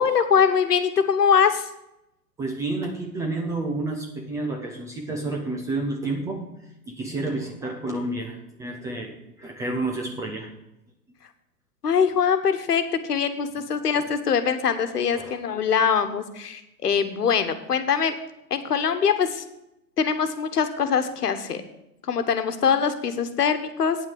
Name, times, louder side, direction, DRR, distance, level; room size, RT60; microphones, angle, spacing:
voice 1, 0.0-1.7 11.8-18.1 18.5-19.4 20.0-21.6 22.1-24.0, left 7 dB, 70° left, 9 dB, 1.4 m, -23 dB
voice 2, 2.4-6.5 6.9-9.1 9.4-10.5 13.6-14.1 15.1-15.4, right 2 dB, 5° right, 1 dB, 0.5 m, -30 dB
9.2 x 6.0 x 7.9 m, 0.87 s
figure-of-eight pair, 110°, 48 cm